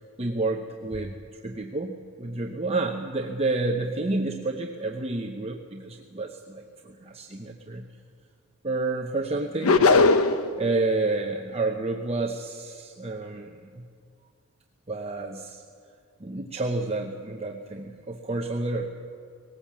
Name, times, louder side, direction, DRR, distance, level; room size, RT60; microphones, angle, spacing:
voice 1, 0.2-1.2 1.4-7.9 8.6-9.8 10.6-13.9 14.9-15.6 16.2-18.9, right 2 dB, 30° right, 2 dB, 0.8 m, -30 dB
sound 1, 9.6-10.5, left 3 dB, 80° left, 0.8 m, -18 dB
19.5 x 18.0 x 7.4 m, 2.2 s
head